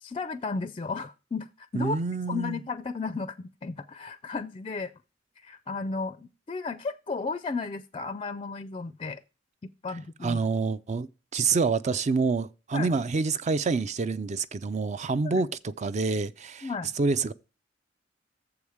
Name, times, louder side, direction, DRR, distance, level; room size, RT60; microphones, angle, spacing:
voice 1, 0.0-2.0 2.3-4.9 5.4-9.2 9.6-10.4 12.7-12.9 15.2-15.4 16.6-16.9, left 4 dB, 30° left, 0.4 m, -34 dB
voice 2, 1.7-2.6 10.2-17.3, right 4 dB, 40° right, 0.4 m, -27 dB
7.1 x 4.8 x 7.1 m
head